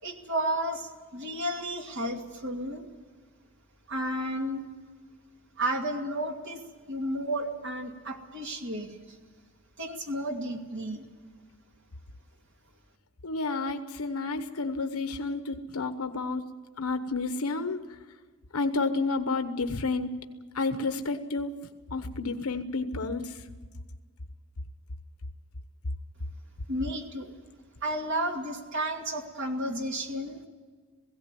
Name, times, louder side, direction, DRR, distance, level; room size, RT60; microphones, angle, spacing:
voice 1, 0.0-2.9 3.9-4.6 5.6-6.6 6.9-9.2 9.8-11.0 26.7-27.3 27.8-30.5, right 1 dB, 55° right, 2 dB, 2.5 m, -32 dB
voice 2, 13.2-16.5 16.8-17.8 18.5-20.1 20.5-21.5 21.9-23.4, left 3 dB, 85° left, 8 dB, 1.1 m, -30 dB
18.0 x 16.5 x 9.1 m, 1.5 s
head